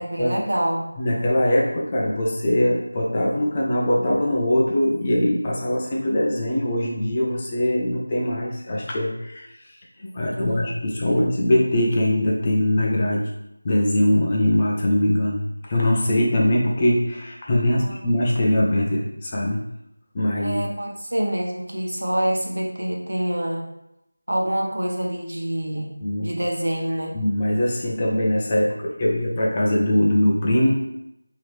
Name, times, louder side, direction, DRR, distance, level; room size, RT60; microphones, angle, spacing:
voice 1, 0.0-0.9 10.3-10.8 11.1-11.2 17.7-18.1 20.4-23.7 24.3-25.9 26.2-27.1, right 1 dB, 65° right, 0 dB, 0.9 m, -26 dB
voice 2, 1.0-9.5 10.1-13.3 13.6-15.4 15.7-19.6 20.1-20.6 26.0-26.3 27.1-30.7, left 1 dB, 15° left, -3 dB, 0.4 m, -21 dB
4.8 x 2.8 x 3.1 m, 0.83 s
figure-of-eight pair, 180°, 0 cm